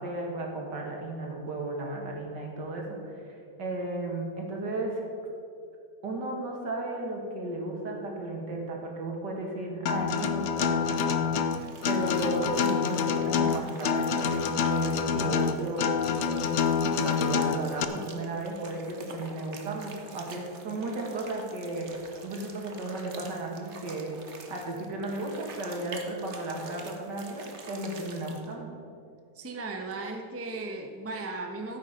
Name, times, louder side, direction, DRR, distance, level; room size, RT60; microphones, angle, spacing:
voice 1, 0.0-3.2 3.6-5.0 6.0-11.3 11.9-16.0 16.2-24.1 24.5-28.7, right 2 dB, 75° right, 0 dB, 2.5 m, -34 dB
Acoustic guitar, 9.9-17.8, left 6 dB, 70° left, 0.6 m, -27 dB
sound 1, 11.6-28.5, right 4 dB, 45° right, 1.3 m, -48 dB
voice 2, 15.1-15.5 29.3-31.8, right 3 dB, 10° right, 2 dB, 0.8 m, -36 dB
14.0 x 8.3 x 5.2 m, 2.5 s
omnidirectional pair, 1.9 m